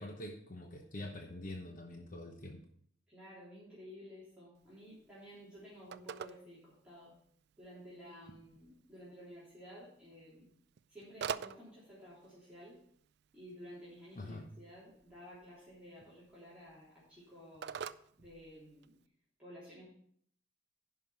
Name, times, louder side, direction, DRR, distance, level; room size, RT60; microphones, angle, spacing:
voice 1, 0.0-2.6 14.2-14.4, left 1 dB, 45° left, 2 dB, 1.0 m, -45 dB
voice 2, 3.1-7.1 7.6-10.5 10.9-12.8 13.3-17.9 18.2-19.0 19.4-19.8, equal, 5° right, -10 dB, 3.3 m, -53 dB
Telephone, 4.6-19.1, right 7 dB, 55° right, 0.3 m, -49 dB
10.5 x 5.7 x 5.6 m, 0.66 s
head